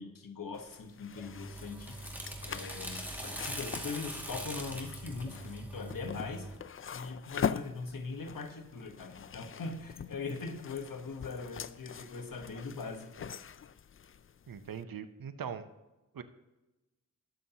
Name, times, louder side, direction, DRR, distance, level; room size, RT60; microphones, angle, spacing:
voice 1, 0.0-1.9 2.4-6.5 6.9-13.3, left 4 dB, 75° left, 4 dB, 1.3 m, -41 dB
sound 1, 0.5-14.8, left 7 dB, 40° left, 0.4 m, -43 dB
sound 2, 1.1-6.6, right 1 dB, 5° right, 2.2 m, -42 dB
voice 2, 14.5-15.7 16.1-16.2, right 7 dB, 80° right, 10 dB, 0.8 m, -41 dB
20.5 x 6.9 x 2.9 m, 1.1 s
cardioid pair, 50°, 34 cm